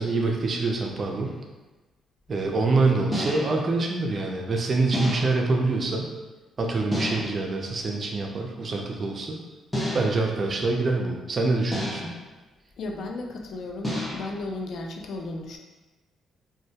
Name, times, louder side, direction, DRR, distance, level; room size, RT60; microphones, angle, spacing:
voice 1, 0.0-1.3 2.3-6.1 6.6-9.4 9.9-12.0, right 3 dB, 40° right, 1 dB, 0.4 m, -25 dB
sound 1, 1.2-1.4 3.1-3.7 4.9-5.5 6.9-7.5 9.7-10.3 11.7-12.3 13.8-14.4, left 1 dB, 5° left, 0.6 m, -30 dB
voice 2, 12.8-15.6, left 2 dB, 65° left, 2 dB, 0.3 m, -34 dB
2.2 x 2.1 x 2.7 m, 1.2 s
cardioid pair, 90°, 0 cm